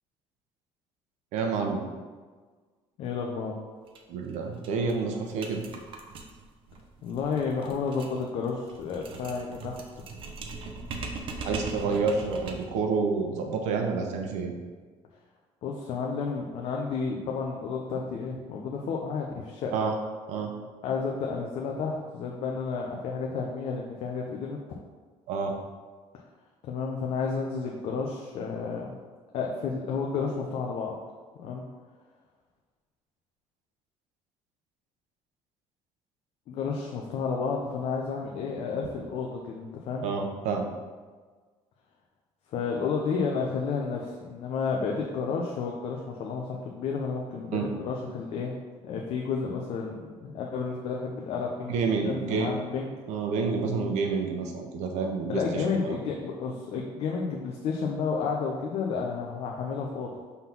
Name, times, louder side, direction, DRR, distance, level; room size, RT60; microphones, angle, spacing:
voice 1, 1.3-1.8 4.1-5.6 11.4-14.5 19.7-19.9 20.3-20.5 25.3-25.5 40.0-40.7 47.5-47.6 51.7-52.5 53.1-56.0, right 4 dB, 80° right, 3 dB, 1.0 m, -29 dB
voice 2, 3.0-3.5 7.0-9.8 15.6-19.7 20.8-24.6 26.6-29.0 29.3-31.0 31.4-31.6 36.5-40.0 42.5-48.5 48.8-52.9 55.3-60.1, left 5 dB, 60° left, -1 dB, 0.8 m, -31 dB
sound 1, 3.9-4.0 4.3-4.4 4.6-12.8, right 3 dB, 50° right, 0.8 m, -40 dB
5.4 x 4.0 x 5.9 m, 1.5 s
cardioid pair, 155°, 12 cm